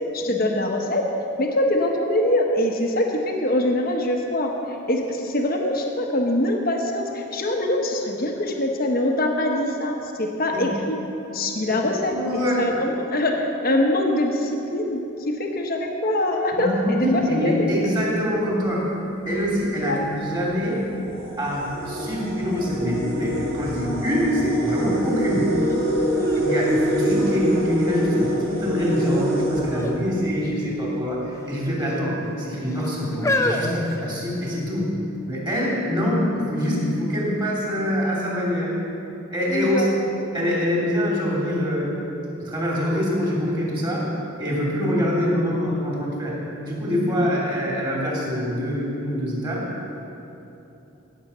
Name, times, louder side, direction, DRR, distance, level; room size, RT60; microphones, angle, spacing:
voice 1, 0.1-1.0 1.4-4.5 4.9-11.0 11.3-15.1 15.4-17.7 19.9-20.2 39.5-39.9 47.0-47.1, left 1 dB, 45° left, 1 dB, 1.0 m, -23 dB
voice 2, 12.1-12.8 16.5-18.8 19.2-20.8 21.4-25.5 26.3-34.9 35.3-38.7 39.3-39.8 40.3-41.9 42.4-44.0 44.4-49.7, equal, 20° right, -5 dB, 2.9 m, -24 dB
sound 1, 19.2-19.5 20.3-20.4 20.8-30.6, right 1 dB, 70° right, 2.8 m, -25 dB
sound 2, 25.7-25.8 26.2-27.7 28.3-28.8 29.7-30.0 30.3-30.5 31.3-32.0 32.7-34.7 35.5-35.6, left 2 dB, 15° left, 0.5 m, -29 dB
16.5 x 7.3 x 5.6 m, 2.9 s
head